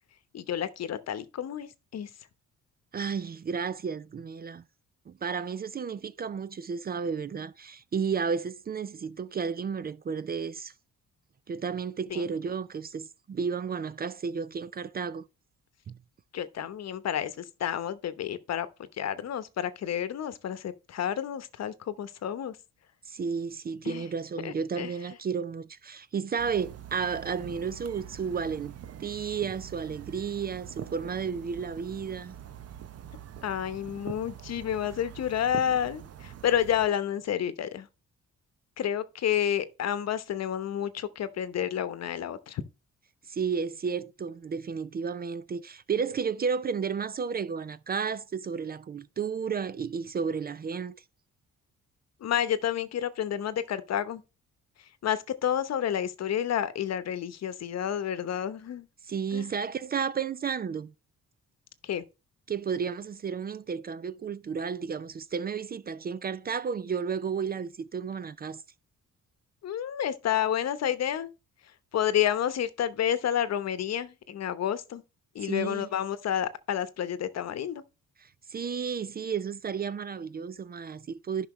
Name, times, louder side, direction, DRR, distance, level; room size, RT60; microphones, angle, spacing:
voice 1, 0.3-2.1 12.1-12.2 16.3-18.7 19.0-22.6 23.8-24.0 24.4-24.9 33.4-37.9 38.8-42.6 52.2-54.2 55.0-58.9 59.3-59.5 61.8-62.0 69.6-71.3 71.9-75.0 75.3-77.8, left 10 dB, 60° left, 0.9 m, -30 dB
voice 2, 2.9-4.6 5.1-10.7 11.5-15.2 15.9-16.0 23.0-32.4 43.3-51.0 59.1-60.9 62.5-68.6 75.4-75.9 78.2-81.5, right 6 dB, 30° right, 0.4 m, -32 dB
sound 1, 26.4-36.9, right 10 dB, 55° right, 0.8 m, -44 dB
10.5 x 5.7 x 3.1 m
cardioid pair, 90°, 30 cm